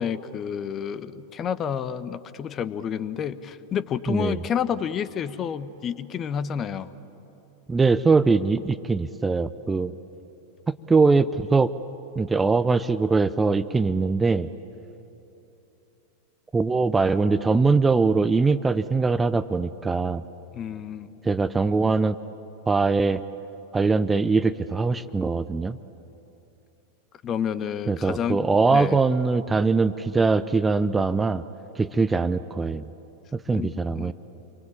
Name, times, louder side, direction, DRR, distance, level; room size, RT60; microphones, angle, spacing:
voice 1, 0.0-6.9 20.5-21.2 27.2-28.4 28.7-29.0 33.5-33.7 34.0-34.1, left 8 dB, 30° left, 15 dB, 1.0 m, -29 dB
voice 2, 4.1-4.4 7.7-9.9 10.7-11.7 12.2-14.5 16.5-20.2 21.2-22.2 22.7-23.2 23.7-25.8 27.9-31.4 31.8-32.9 33.3-34.1, right 4 dB, 10° right, 13 dB, 0.6 m, -22 dB
29.0 x 23.5 x 8.7 m, 3.0 s
figure-of-eight pair, 90°, 0 cm